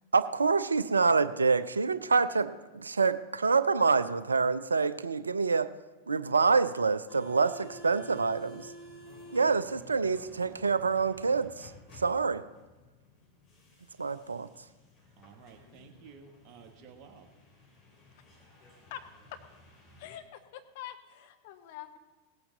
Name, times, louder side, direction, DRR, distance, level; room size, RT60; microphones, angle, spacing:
voice 1, 0.1-5.7 6.1-8.7 9.3-12.4 14.0-14.5, right 4 dB, 75° right, 14 dB, 0.5 m, -27 dB
sound 1, 7.1-20.2, equal, 25° left, 2.8 m, -53 dB
voice 2, 15.2-17.3, right 6 dB, 35° right, 4 dB, 1.5 m, -53 dB
voice 3, 20.0-22.0, left 11 dB, 50° left, 7 dB, 1.0 m, -45 dB
17.5 x 8.6 x 3.9 m, 1.2 s
figure-of-eight pair, 90°, 0 cm